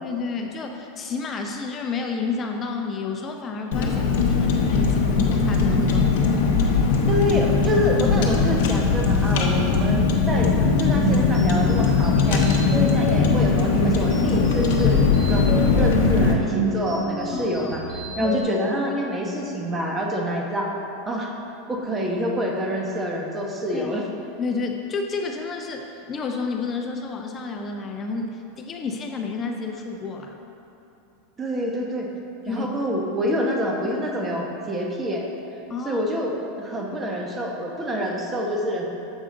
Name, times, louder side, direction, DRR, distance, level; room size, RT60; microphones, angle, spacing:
voice 1, 0.0-6.4 17.3-17.7 18.2-18.4 23.7-23.9 24.4-30.4 32.5-32.7 35.7-36.1, left 4 dB, 30° left, 3 dB, 0.5 m, -30 dB
Car, 3.7-16.3, left 4 dB, 70° left, 0.8 m, -20 dB
voice 2, 7.1-12.5 12.8-15.0 15.3-17.8 18.2-20.7 21.1-21.3 21.7-24.1 31.4-32.1 32.5-35.3 35.8-38.9, equal, 20° right, 0 dB, 1.0 m, -27 dB
sound 1, 10.1-18.4, right 2 dB, 50° right, 1.1 m, -29 dB
7.2 x 4.8 x 3.8 m, 2.8 s
supercardioid pair, 115°, 0 cm